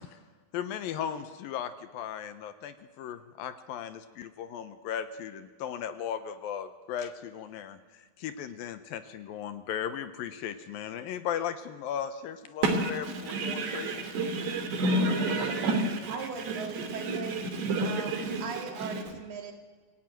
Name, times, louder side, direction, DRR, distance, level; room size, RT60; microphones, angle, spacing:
voice 1, 0.5-14.0, left 9 dB, 75° left, 10 dB, 2.4 m, -37 dB
voice 2, 12.6-16.2 16.5-18.9, right 2 dB, 85° right, 5 dB, 5.1 m, -30 dB
voice 3, 16.1-19.5, right 5 dB, 70° right, 3 dB, 4.5 m, -39 dB
26.5 x 16.5 x 9.2 m, 1.5 s
omnidirectional pair, 4.8 m